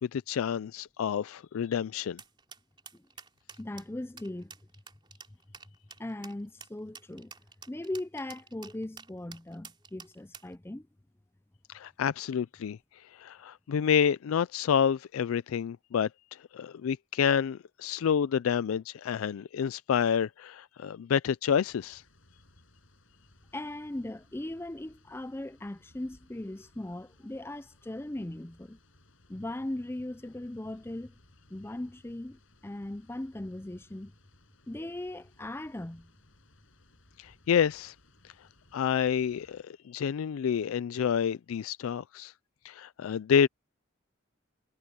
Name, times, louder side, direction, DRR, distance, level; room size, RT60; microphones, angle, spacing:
voice 1, 0.0-2.2 11.7-12.8 13.1-22.0 37.2-37.9 38.7-42.3 42.6-43.5, left 7 dB, 90° left, 0.4 m, -28 dB
sound 1, 2.2-10.6, right 5 dB, 25° right, 3.2 m, -49 dB
voice 2, 3.6-4.5 6.0-7.3 7.7-10.9 23.5-28.8 29.3-31.1 31.5-34.1 34.7-36.1, left 1 dB, 10° left, 0.5 m, -39 dB
sound 2, 21.7-39.6, left 1 dB, 70° left, 7.0 m, -63 dB
head